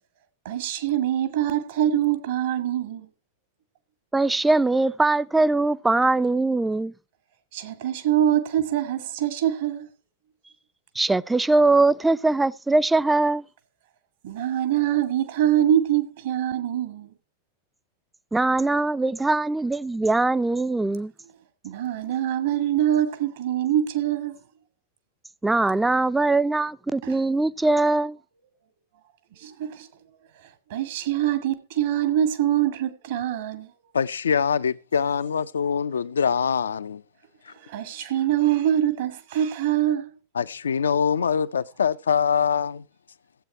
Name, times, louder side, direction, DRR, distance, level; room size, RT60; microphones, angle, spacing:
voice 1, 0.4-3.1 7.5-9.9 14.2-17.1 21.6-24.4 27.0-27.2 29.3-29.9 30.7-33.7 37.5-40.1, right 11 dB, 60° right, 1.7 m, -24 dB
voice 2, 4.1-6.9 11.0-13.4 18.3-21.1 25.4-28.2, right 2 dB, 10° right, 0.5 m, -21 dB
voice 3, 33.9-37.0 37.5-37.6 40.3-42.8, left 7 dB, 70° left, 0.6 m, -24 dB
16.0 x 8.1 x 4.5 m
figure-of-eight pair, 90°, 0 cm